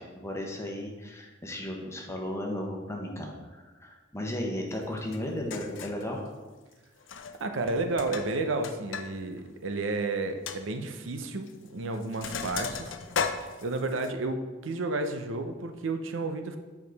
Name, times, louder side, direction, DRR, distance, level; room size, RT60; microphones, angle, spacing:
voice 1, 0.0-6.3, left 1 dB, 15° left, 0 dB, 1.0 m, -35 dB
Sink (filling or washing), 5.1-5.2 5.5-6.0 7.0-7.4 7.7-9.1 9.4-9.5 9.9-10.0 10.5-10.6 11.5-11.7 11.9-14.1, left 6 dB, 75° left, 0.5 m, -35 dB
voice 2, 7.4-12.9 13.4-16.6, right 2 dB, 90° right, 6 dB, 0.6 m, -32 dB
7.2 x 4.8 x 4.0 m, 1.3 s
head